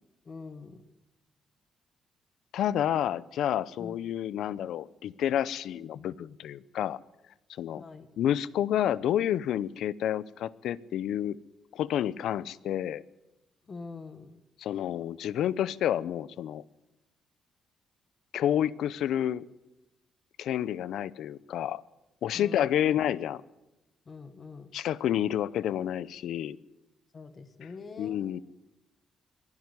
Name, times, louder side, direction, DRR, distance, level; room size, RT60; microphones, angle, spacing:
voice 1, 0.2-0.8 3.8-4.0 7.8-8.1 13.6-14.4 22.3-22.9 24.0-24.7 27.1-28.4, left 4 dB, 30° left, 10 dB, 1.3 m, -44 dB
voice 2, 2.5-7.0 7.6-7.8 8.2-11.4 11.7-13.0 14.6-16.6 18.3-19.4 20.4-21.8 22.2-23.4 24.7-26.6 28.0-28.4, left 10 dB, 70° left, 20 dB, 0.7 m, -29 dB
22.5 x 12.0 x 9.7 m, 0.98 s
cardioid pair, 165°, 0 cm